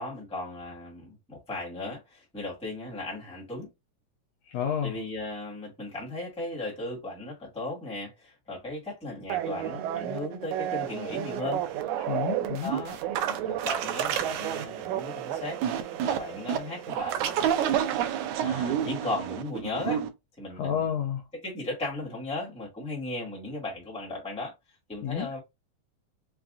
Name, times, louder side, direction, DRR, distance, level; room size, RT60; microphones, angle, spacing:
voice 1, 0.0-3.7 4.8-11.6 12.6-13.0 13.3-15.6 16.0-17.6 18.4-20.0 20.4-20.8 21.3-24.5 24.9-25.4, left 2 dB, 5° left, 1.2 m, -36 dB
voice 2, 4.5-4.9 12.1-12.7 20.6-21.2 25.0-25.3, left 8 dB, 75° left, 1.6 m, -30 dB
sound 1, 9.3-20.1, right 10 dB, 90° right, 2.1 m, -30 dB
5.8 x 2.3 x 2.4 m
omnidirectional pair, 3.4 m